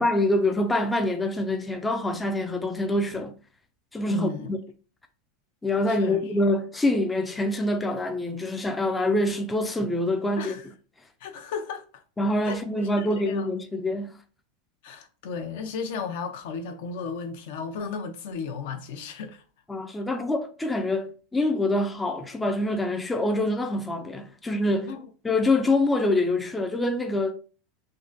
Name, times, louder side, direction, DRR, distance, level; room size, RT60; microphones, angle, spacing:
voice 1, 0.0-3.3 3.9-4.6 5.6-10.6 12.2-14.2 19.7-25.0 25.2-27.3, left 1 dB, 10° left, 0.3 m, -25 dB
voice 2, 4.1-4.5 5.9-6.2 10.4-10.7 11.2-12.0 12.4-12.6 13.0-13.5 14.8-19.4 24.9-25.1, left 5 dB, 70° left, 0.5 m, -34 dB
3.7 x 2.2 x 2.5 m
supercardioid pair, 135°, 0 cm